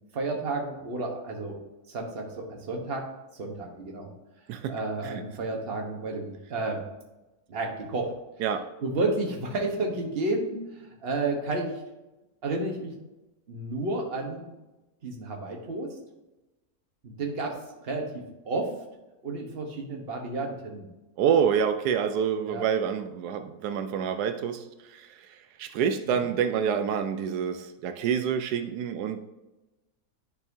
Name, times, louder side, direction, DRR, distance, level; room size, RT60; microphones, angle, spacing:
voice 1, 0.1-1.6 1.9-3.1 3.3-4.1 4.7-6.8 7.5-8.1 8.8-11.8 12.4-12.9 13.5-14.5 15.0-15.9 17.0-18.1 18.4-18.7 19.2-20.9 22.5-22.7 26.1-26.2, right 2 dB, 40° right, 1 dB, 1.3 m, -31 dB
voice 2, 21.2-24.6 24.9-25.1 25.6-29.2, right 7 dB, 90° right, 8 dB, 1.1 m, -27 dB
11.0 x 4.2 x 2.7 m, 1.0 s
omnidirectional pair, 1.6 m